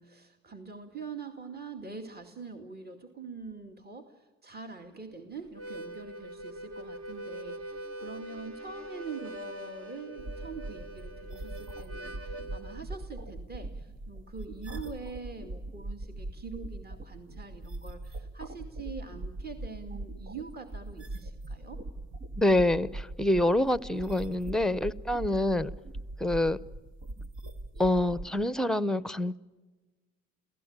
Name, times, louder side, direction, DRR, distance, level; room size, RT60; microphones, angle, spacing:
voice 1, 0.0-21.8, right 4 dB, 30° right, 4 dB, 2.4 m, -44 dB
Harmonica, 5.5-12.8, right 1 dB, 50° right, 2.0 m, -43 dB
sound 1, 10.2-28.2, right 2 dB, 70° right, 2.1 m, -41 dB
voice 2, 22.4-25.7 26.2-26.6 27.8-29.4, left 1 dB, ahead, 17 dB, 0.7 m, -26 dB
30.0 x 17.0 x 8.9 m, 1.3 s
cardioid pair, 90°, 30 cm